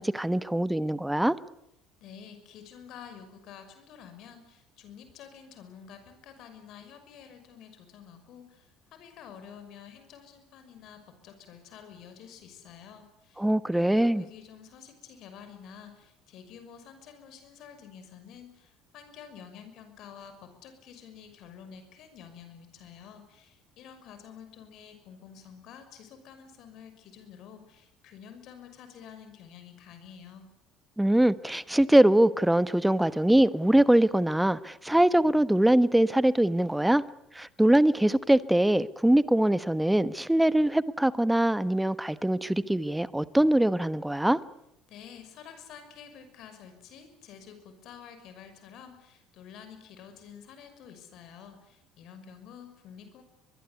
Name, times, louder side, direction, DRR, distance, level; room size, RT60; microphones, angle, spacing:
voice 1, 0.0-1.4 13.4-14.2 31.0-37.0 37.3-44.4, right 1 dB, 5° right, 16 dB, 1.2 m, -23 dB
voice 2, 2.0-13.5 13.7-30.5 44.9-53.2, left 7 dB, 60° left, 8 dB, 6.0 m, -49 dB
23.0 x 22.5 x 8.5 m, 0.81 s
hypercardioid pair, 60°, 0 cm